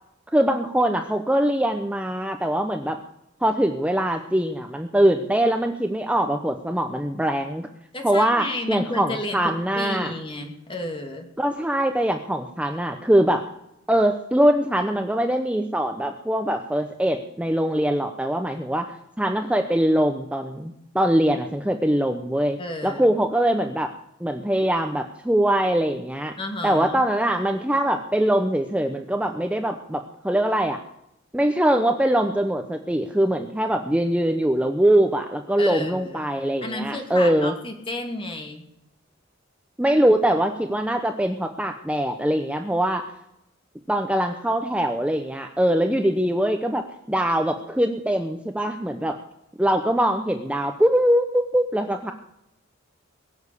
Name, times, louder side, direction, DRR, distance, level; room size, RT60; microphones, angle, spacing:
voice 1, 0.3-3.0 3.4-7.7 8.0-10.1 11.4-13.4 13.9-23.9 24.2-26.4 26.6-30.8 31.3-37.5 39.8-43.1 43.9-49.2 49.6-52.1, right 1 dB, 5° right, 5 dB, 0.8 m, -22 dB
voice 2, 7.9-11.3 22.6-23.2 26.4-27.0 35.6-36.3 36.6-38.7, left 2 dB, 25° left, 4 dB, 2.4 m, -32 dB
21.5 x 7.3 x 8.3 m, 0.80 s
head